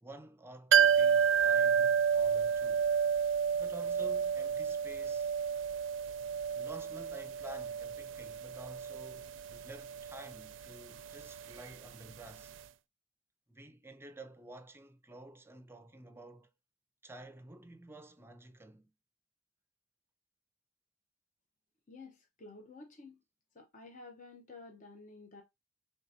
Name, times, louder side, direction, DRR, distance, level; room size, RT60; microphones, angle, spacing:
voice 1, 0.0-2.9 3.6-5.3 6.5-12.5 13.5-16.5 17.0-18.9, right 1 dB, 15° right, 0.5 m, -51 dB
sound 1, 0.7-12.3 12.6-12.7, right 7 dB, 90° right, 0.4 m, -30 dB
voice 2, 21.9-23.2 23.5-25.4, left 3 dB, 40° left, 0.8 m, -52 dB
4.6 x 3.5 x 2.7 m
head